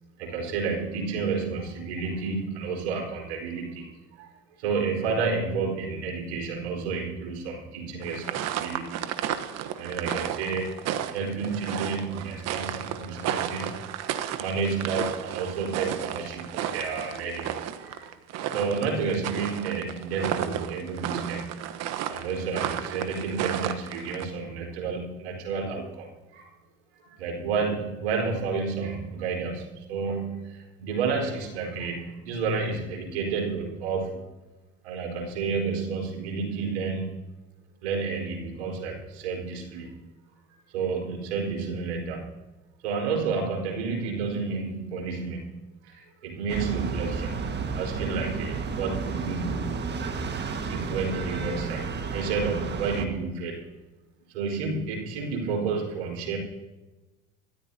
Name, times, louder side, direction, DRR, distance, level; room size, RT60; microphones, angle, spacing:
voice 1, 0.2-4.3 4.6-9.0 9.8-10.8 11.1-13.8 14.4-18.1 18.5-21.6 22.1-26.5 26.9-34.2 34.8-37.1 37.8-40.0 40.7-42.3 42.8-45.5 45.8-47.3 47.7-49.8 50.6-53.6 54.3-56.4, right 4 dB, 80° right, 0 dB, 4.8 m, -30 dB
sound 1, 8.0-24.3, right 10 dB, 55° right, 1.2 m, -33 dB
sound 2, 46.5-53.1, right 5 dB, 35° right, 1.7 m, -32 dB
24.0 x 14.0 x 2.8 m, 1.1 s
hypercardioid pair, 80°, 32 cm